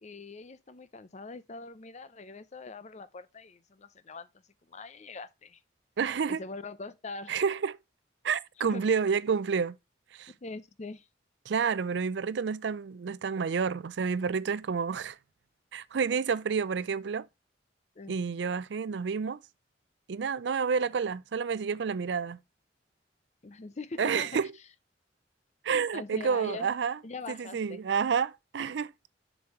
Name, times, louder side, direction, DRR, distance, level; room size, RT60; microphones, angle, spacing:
voice 1, 0.0-4.3 4.7-5.6 6.3-7.4 8.6-8.8 10.4-11.1 18.0-18.2 23.4-24.4 25.9-26.7 27.0-27.8, left 3 dB, 40° left, 0.6 m, -42 dB
voice 2, 6.0-6.4 7.3-7.8 8.2-9.8 10.1-10.3 11.5-15.2 15.7-17.3 18.1-19.4 20.1-22.4 24.0-24.5 25.6-27.0 27.3-28.9, right 6 dB, 70° right, 0.4 m, -29 dB
7.0 x 6.2 x 3.1 m
head